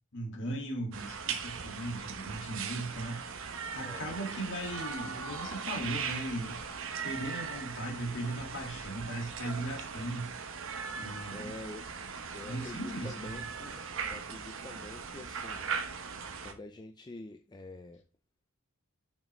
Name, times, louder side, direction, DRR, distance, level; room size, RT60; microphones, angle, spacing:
voice 1, 0.1-3.2 3.7-6.6 7.0-10.3 10.9-11.5 12.5-13.4, right 1 dB, 55° left, 2.0 m, -38 dB
sound 1, 0.9-16.5, right 6 dB, 60° right, 1.0 m, -39 dB
voice 2, 3.8-4.2 11.3-11.9 12.3-15.7 16.4-18.0, left 2 dB, 20° left, 0.5 m, -47 dB
6.7 x 5.8 x 3.1 m
head